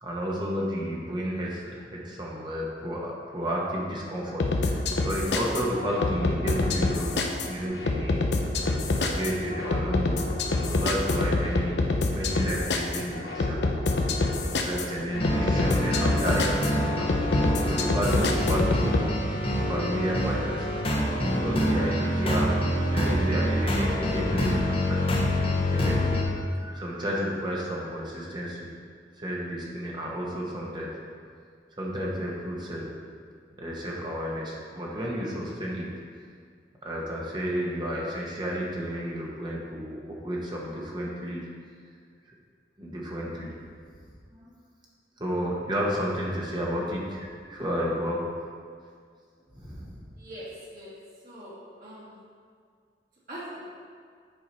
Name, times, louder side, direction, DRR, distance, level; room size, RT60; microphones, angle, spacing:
voice 1, 0.0-8.2 9.0-10.2 10.6-13.6 14.6-17.2 17.7-19.2 19.7-20.7 21.3-22.6 22.9-25.0 25.7-28.6 29.2-30.9 31.8-32.9 33.6-35.9 36.8-41.4 42.8-43.6 44.3-44.4 45.2-48.2 49.5-50.0, equal, 25° right, -4 dB, 1.0 m, -32 dB
sound 1, 4.4-19.1, left 2 dB, 75° left, 0.7 m, -27 dB
sound 2, 15.1-26.2, equal, 35° left, 0.9 m, -26 dB
voice 2, 50.2-50.9 51.2-51.5 51.8-52.2 53.3-53.6, right 1 dB, 50° right, -9 dB, 2.1 m, -41 dB
7.8 x 5.6 x 4.2 m, 2.1 s
head